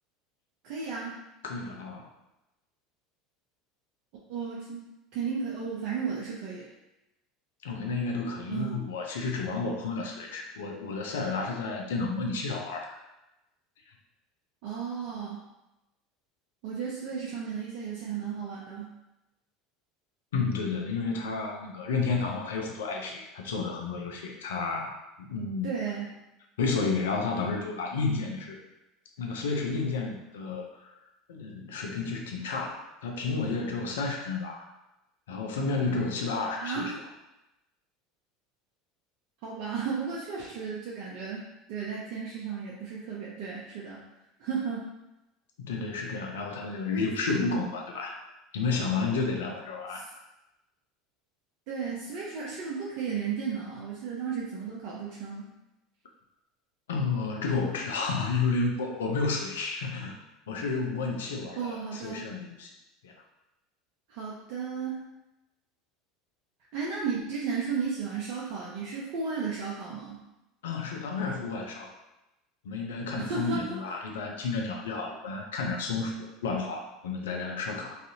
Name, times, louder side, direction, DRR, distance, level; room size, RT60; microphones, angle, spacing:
voice 1, 0.6-1.2 4.3-6.7 8.5-8.8 14.6-15.4 16.6-18.9 25.6-26.1 36.6-37.0 39.4-44.0 44.4-44.8 46.9-47.0 49.9-50.0 51.7-55.5 61.6-62.3 64.1-65.0 66.7-70.2 73.1-73.8, right 6 dB, 60° right, -5 dB, 0.5 m, -34 dB
voice 2, 1.4-2.1 7.6-12.9 20.3-25.0 25.3-25.7 26.6-28.6 29.2-30.7 31.3-34.7 35.3-36.9 45.6-48.2 48.5-50.0 56.9-60.2 60.5-62.7 63.0-63.1 70.6-72.0 72.6-78.0, left 4 dB, 80° left, 1 dB, 0.5 m, -31 dB
2.5 x 2.4 x 2.7 m, 0.94 s
hypercardioid pair, 75°, 0 cm